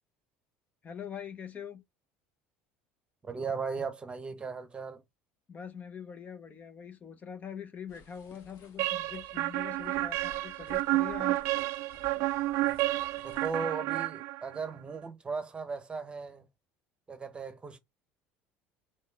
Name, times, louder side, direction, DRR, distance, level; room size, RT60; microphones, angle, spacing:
voice 1, 0.8-1.8 5.5-11.4, left 7 dB, 30° left, 0.8 m, -43 dB
voice 2, 3.2-5.0 13.2-16.4 17.1-17.8, right 5 dB, 20° right, 0.9 m, -37 dB
sound 1, 7.9-13.6, left 3 dB, 60° left, 1.8 m, -56 dB
sound 2, 8.8-14.7, right 18 dB, 65° right, 0.4 m, -31 dB
3.7 x 3.1 x 4.5 m
supercardioid pair, 95°, 5 cm